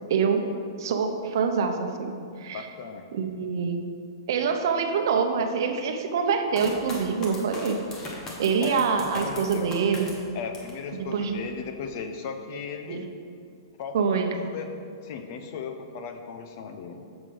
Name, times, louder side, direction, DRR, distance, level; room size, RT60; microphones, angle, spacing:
voice 1, 0.1-0.5 0.8-2.7 3.1-3.8 4.3-7.8 8.4-10.1 10.9-11.4 12.9-13.1 13.9-14.3, right 6 dB, 55° right, 5 dB, 0.9 m, -25 dB
voice 2, 2.5-3.0 8.6-9.7 10.3-13.1 13.8-14.7 15.0-17.0, left 5 dB, 40° left, 6 dB, 0.7 m, -36 dB
sound 1, 6.5-10.8 11.3-11.9, left 2 dB, 20° left, 1.2 m, -39 dB
8.1 x 7.3 x 5.6 m, 2.4 s
hypercardioid pair, 170°, 2 cm